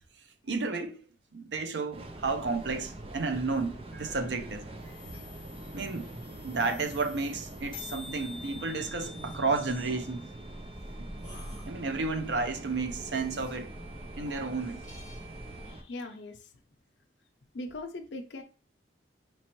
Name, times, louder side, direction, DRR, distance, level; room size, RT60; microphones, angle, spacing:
voice 1, 0.4-1.1 1.3-4.6 5.7-6.1 6.4-10.3 11.7-13.7 14.2-14.8, right 3 dB, 80° right, 0.6 m, -32 dB
Train, 1.9-15.8, right 1 dB, 30° right, 0.6 m, -44 dB
sound 1, 3.9-15.7, equal, 5° right, 1.8 m, -52 dB
sound 2, 5.7-5.8 5.9-6.0 6.2-6.4 6.7-6.8 6.9-7.2 7.5-7.6 7.7-11.7, left 4 dB, 30° left, 0.8 m, -48 dB
voice 2, 15.6-16.5 17.5-18.4, left 2 dB, 85° left, 0.6 m, -40 dB
5.1 x 3.1 x 3.0 m
head